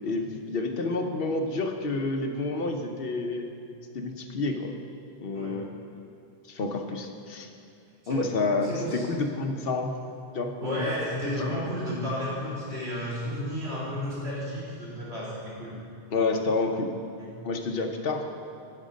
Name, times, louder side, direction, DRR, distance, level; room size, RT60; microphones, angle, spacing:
voice 1, 0.0-3.5 3.9-4.7 5.2-5.7 6.5-7.5 8.1-9.9 10.3-10.5 16.1-16.9 17.4-18.2, left 3 dB, 65° left, 4 dB, 0.9 m, -29 dB
voice 2, 8.6-9.0 10.6-15.7 17.2-17.3, left 1 dB, 85° right, -7 dB, 2.9 m, -32 dB
10.0 x 6.5 x 5.1 m, 2.7 s
omnidirectional pair, 1.1 m